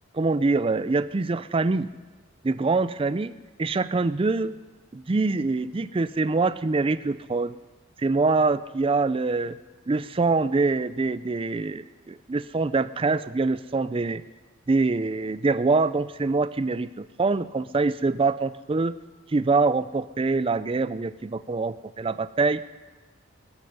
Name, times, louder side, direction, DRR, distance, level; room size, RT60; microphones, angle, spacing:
voice 1, 0.1-1.9 2.4-4.6 4.9-7.6 8.0-9.6 9.9-14.2 14.7-18.9 19.3-22.6, right 3 dB, 25° right, 14 dB, 0.4 m, -24 dB
19.5 x 13.5 x 5.5 m, 1.3 s
head